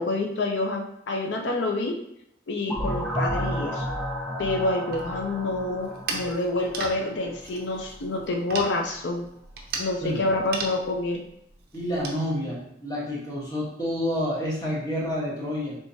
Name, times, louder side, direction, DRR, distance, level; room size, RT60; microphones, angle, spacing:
voice 1, 0.0-1.9 2.5-3.9 4.4-9.3 9.8-11.2, left 2 dB, 80° left, 2 dB, 0.5 m, -27 dB
sound 1, 2.7-7.4, equal, ahead, 0.5 m, -32 dB
sound 2, 4.9-12.2, right 4 dB, 60° right, 0.6 m, -37 dB
voice 2, 11.7-15.8, equal, 20° left, -5 dB, 1.3 m, -29 dB
4.5 x 3.3 x 2.7 m, 0.74 s
head